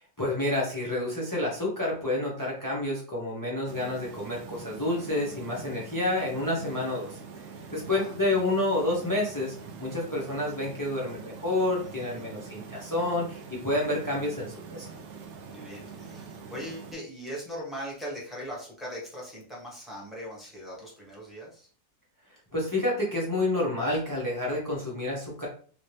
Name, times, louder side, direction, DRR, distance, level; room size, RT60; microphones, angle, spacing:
voice 1, 0.2-7.2 7.7-14.9 22.5-25.5, left 1 dB, 25° left, -4 dB, 0.4 m, -29 dB
sound 1, 3.7-16.9, right 5 dB, 90° right, 0.6 m, -44 dB
voice 2, 7.8-8.1 12.0-12.3 13.9-14.3 15.4-21.7, equal, ahead, -5 dB, 1.0 m, -40 dB
3.1 x 2.7 x 3.2 m, 0.43 s
omnidirectional pair, 1.9 m